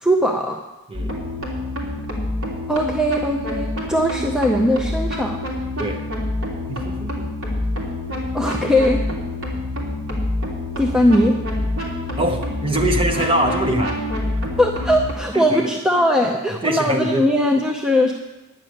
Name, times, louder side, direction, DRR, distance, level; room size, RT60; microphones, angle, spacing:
voice 1, 0.0-0.6 2.7-5.4 8.3-9.0 10.8-11.3 14.6-18.1, equal, 5° right, 0 dB, 0.6 m, -19 dB
sound 1, 0.9-15.1, left 1 dB, 70° right, 3.1 m, -26 dB
voice 2, 6.7-7.3 12.2-14.1 15.3-15.7 16.2-17.3, right 1 dB, 25° right, 3 dB, 1.1 m, -23 dB
10.5 x 6.8 x 9.4 m, 1.1 s
head